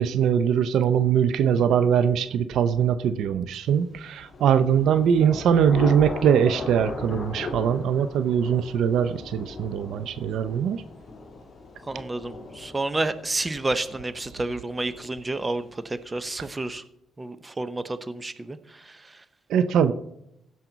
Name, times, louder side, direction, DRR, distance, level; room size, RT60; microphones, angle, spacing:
voice 1, 0.0-10.8 19.5-19.9, right 8 dB, 80° right, 12 dB, 0.6 m, -22 dB
Thunder / Rain, 4.1-15.7, left 3 dB, 35° left, 3.0 m, -38 dB
voice 2, 11.9-16.8 17.2-19.2, right 2 dB, 20° right, 12 dB, 0.8 m, -30 dB
16.0 x 5.9 x 4.0 m, 0.80 s
cardioid pair, 90°, 0 cm